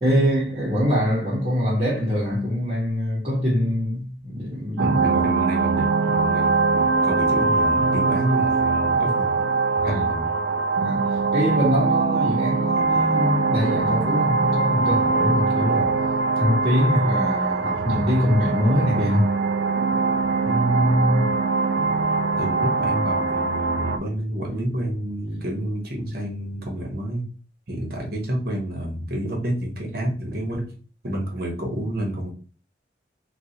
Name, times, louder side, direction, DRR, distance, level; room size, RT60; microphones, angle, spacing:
voice 1, 0.0-5.0 9.8-10.0 10.8-16.0 16.4-19.3, equal, 30° right, 1.1 m, -23 dB
voice 2, 4.8-9.4 9.8-10.3 20.4-21.3 22.4-27.3 27.7-30.7 31.0-32.3, right 1 dB, 55° right, 1.0 m, -28 dB
sound 1, 4.8-24.0, right 4 dB, 85° right, 0.4 m, -22 dB
3.7 x 2.4 x 2.8 m
head